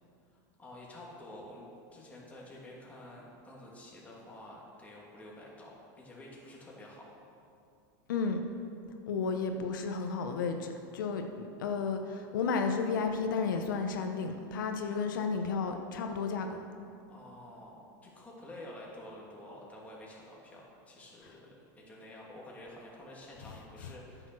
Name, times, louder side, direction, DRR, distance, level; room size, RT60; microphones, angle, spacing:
voice 1, 0.6-7.1 17.1-24.3, left 1 dB, 15° left, -4 dB, 2.5 m, -49 dB
voice 2, 8.1-8.4 9.1-16.6 23.8-23.9, left 5 dB, 85° left, 5 dB, 0.8 m, -32 dB
9.6 x 7.0 x 6.1 m, 2.5 s
supercardioid pair, 130°, 10 cm